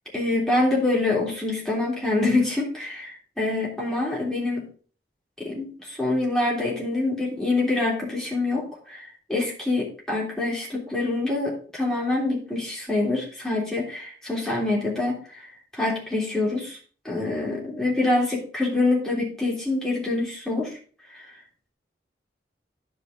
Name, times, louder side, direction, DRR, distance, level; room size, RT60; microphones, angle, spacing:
voice 1, 0.1-4.7 5.4-15.5 15.7-16.8 17.1-20.8 21.1-21.3, left 2 dB, 5° left, -5 dB, 3.3 m, -25 dB
11.0 x 5.0 x 5.1 m, 0.41 s
head